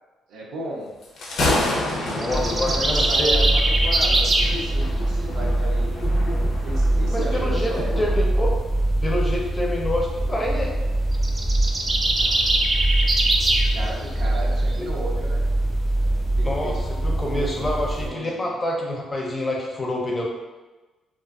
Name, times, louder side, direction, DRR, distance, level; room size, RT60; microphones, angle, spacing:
voice 1, 0.3-0.9 2.1-5.9 6.6-7.9 12.2-12.7 13.7-15.4 16.4-18.6, right 1 dB, 80° right, -3 dB, 0.6 m, -35 dB
Thunder, 1.0-8.3, left 1 dB, 70° left, 0.5 m, -30 dB
voice 2, 2.1-3.5 7.1-8.5 9.0-10.7 14.8-14.9 16.4-16.7 17.0-20.2, left 1 dB, 25° left, -2 dB, 0.6 m, -27 dB
sound 1, 2.2-4.5 11.1-13.7, right 2 dB, 30° right, 0.3 m, -22 dB
sound 2, 2.3-18.1, right 1 dB, 10° right, 0.7 m, -24 dB
2.4 x 2.3 x 2.3 m, 1.2 s
cardioid pair, 90°, 0 cm